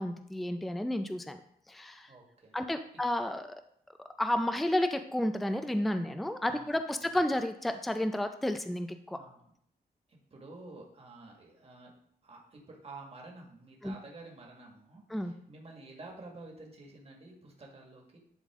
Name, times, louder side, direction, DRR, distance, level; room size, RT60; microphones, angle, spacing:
voice 1, 0.0-1.4 1.7-2.1 2.5-3.5 4.2-9.2 13.8-13.9 15.1-15.3, left 1 dB, ahead, 8 dB, 0.4 m, -31 dB
voice 2, 2.1-2.6 6.5-7.1 9.1-9.5 10.1-11.9 12.2-18.2, right 2 dB, 35° right, 0 dB, 1.8 m, -50 dB
11.0 x 3.9 x 3.6 m, 0.68 s
wide cardioid pair, 115°, 17 cm